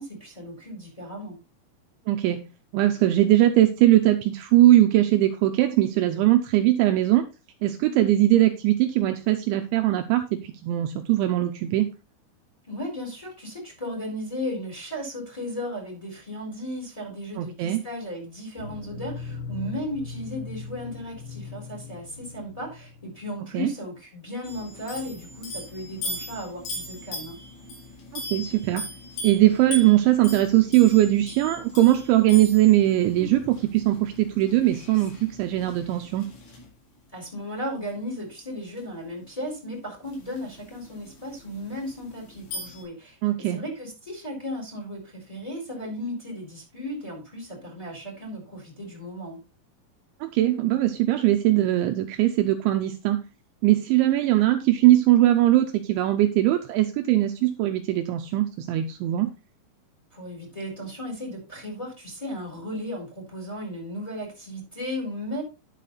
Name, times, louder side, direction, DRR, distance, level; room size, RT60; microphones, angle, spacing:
voice 1, 0.0-1.4 12.6-27.4 37.1-49.4 60.1-65.4, equal, 5° left, -1 dB, 3.7 m, -35 dB
voice 2, 2.1-2.4 2.7-7.3 7.6-11.9 17.4-17.8 23.5-23.7 28.1-28.9 29.2-36.3 43.2-43.6 50.2-53.2 53.6-59.3, right 14 dB, 80° right, 6 dB, 2.9 m, -20 dB
sound 1, 18.6-23.4, left 5 dB, 75° left, 5.5 m, -39 dB
sound 2, 24.4-36.7 38.8-38.9 40.0-42.8, left 1 dB, 60° left, 6.1 m, -39 dB
10.5 x 6.7 x 4.0 m, 0.28 s
omnidirectional pair, 5.8 m